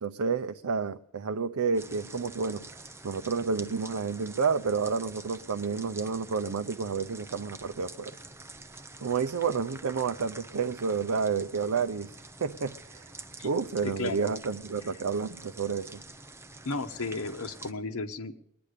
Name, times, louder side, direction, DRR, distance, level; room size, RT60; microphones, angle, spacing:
voice 1, 0.0-2.6 3.0-8.1 9.0-13.1 13.4-16.0, right 5 dB, 80° right, 9 dB, 0.6 m, -30 dB
sound 1, 1.7-17.7, right 2 dB, 10° right, 0.7 m, -47 dB
voice 2, 13.8-14.3 16.6-18.4, left 3 dB, 80° left, 8 dB, 1.2 m, -34 dB
21.5 x 10.0 x 6.6 m, 0.73 s
head